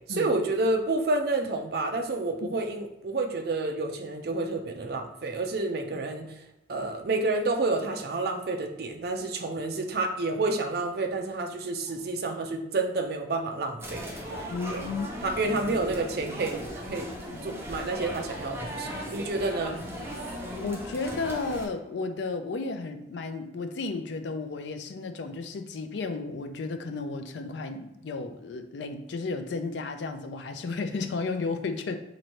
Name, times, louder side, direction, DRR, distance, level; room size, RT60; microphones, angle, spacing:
voice 1, 0.0-6.2 6.7-14.0 14.3-14.8 15.2-17.1 17.4-19.8, right 2 dB, 60° right, 3 dB, 0.5 m, -29 dB
sound 1, 13.8-21.7, equal, 15° right, 0.6 m, -37 dB
voice 2, 14.5-15.1 15.6-15.7 17.3-17.6 20.6-32.0, left 3 dB, 75° left, 7 dB, 0.4 m, -33 dB
3.1 x 2.6 x 4.2 m, 0.93 s
head